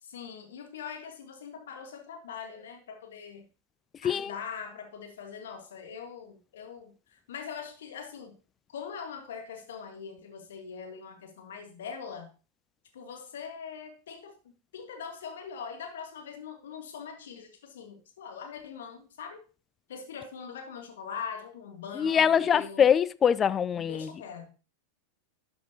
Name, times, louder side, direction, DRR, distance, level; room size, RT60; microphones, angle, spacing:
voice 1, 0.0-3.5 4.0-8.4 8.7-12.3 12.9-14.4 14.7-19.4 19.9-22.8 23.7-24.5, left 6 dB, 60° left, 1.7 m, -42 dB
voice 2, 22.0-24.1, left 8 dB, 25° left, 0.3 m, -23 dB
11.5 x 6.1 x 2.9 m
figure-of-eight pair, 90°, 0 cm